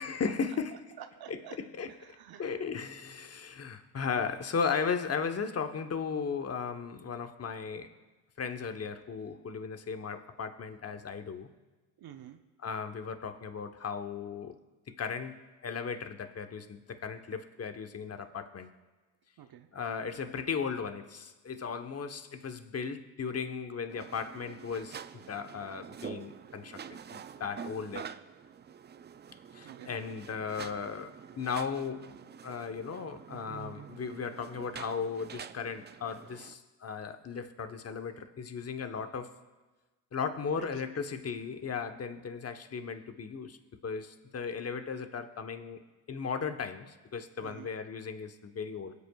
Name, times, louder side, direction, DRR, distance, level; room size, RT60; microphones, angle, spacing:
voice 1, 0.0-0.8 1.3-7.9 8.4-11.5 12.6-14.5 14.9-18.7 19.7-28.1 29.5-32.2 32.4-39.4 40.1-43.6 43.8-45.8 46.1-48.9, left 6 dB, 30° left, 8 dB, 1.0 m, -36 dB
voice 2, 1.0-1.6 1.9-2.7 12.0-12.4 19.4-19.7 29.6-29.9 40.5-41.0 47.4-47.7, right 10 dB, 55° right, 8 dB, 0.8 m, -49 dB
sound 1, 23.9-36.5, right 8 dB, 25° right, 0.3 m, -47 dB
23.0 x 8.3 x 2.3 m, 1.2 s
supercardioid pair, 55°, 46 cm